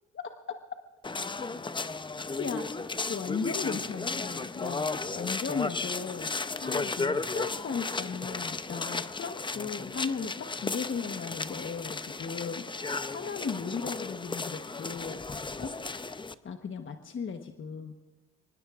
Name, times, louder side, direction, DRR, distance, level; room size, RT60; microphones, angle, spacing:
voice 1, 0.1-0.6 2.4-2.7 3.1-4.9 5.1-6.3 6.6-15.2 15.6-15.7 16.4-17.9, left 5 dB, 40° left, 5 dB, 1.2 m, -36 dB
sound 1, 1.0-16.3, left 3 dB, 15° left, 0.6 m, -34 dB
24.5 x 20.0 x 2.5 m, 1.2 s
cardioid pair, 90°, 30 cm